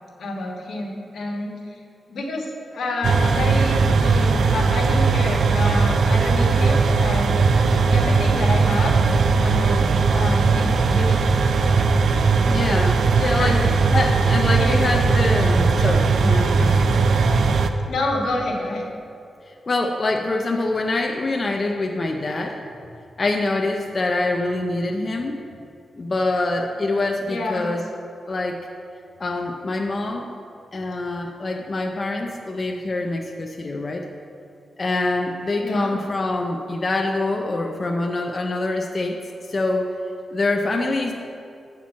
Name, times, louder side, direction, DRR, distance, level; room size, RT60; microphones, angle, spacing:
voice 1, 0.2-1.8 2.1-7.4 7.9-8.9 9.3-9.9 10.1-11.5 13.4-13.6 14.6-14.8 17.9-18.9 27.3-27.7 35.6-35.9, left 2 dB, 75° left, 0 dB, 1.4 m, -28 dB
sound 1, 3.0-17.7, right 4 dB, 65° right, 0.4 m, -18 dB
voice 2, 12.5-13.6 13.9-16.9 19.5-22.6 23.2-25.4 26.0-27.8 28.3-28.6 29.2-30.3 30.7-34.1 34.8-39.2 39.5-39.9 40.3-41.1, left 2 dB, 30° left, 1 dB, 0.5 m, -25 dB
8.6 x 4.4 x 7.2 m, 2.5 s
wide cardioid pair, 160°, 0 cm